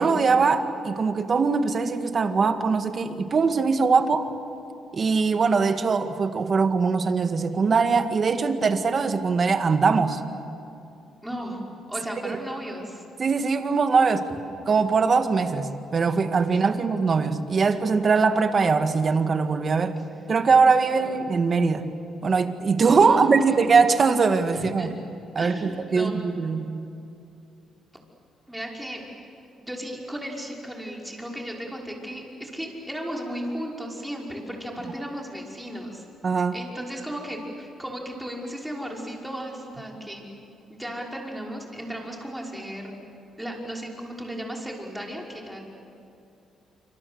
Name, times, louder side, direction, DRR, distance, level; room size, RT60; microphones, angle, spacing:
voice 1, 0.0-4.3 4.9-10.2 12.2-12.4 13.2-14.3 14.7-19.9 20.3-21.9 22.2-24.9 25.3-26.7 36.2-36.6, right 4 dB, 40° right, 8 dB, 1.8 m, -21 dB
voice 2, 11.2-11.6 11.9-13.0 20.9-21.2 23.1-23.6 24.6-25.0 25.4-26.1 28.5-29.1 29.6-36.0 36.5-40.2 40.7-43.0 43.4-45.6, equal, 5° right, -1 dB, 5.5 m, -35 dB
27.0 x 25.5 x 8.1 m, 2.7 s
cardioid pair, 90°, 0 cm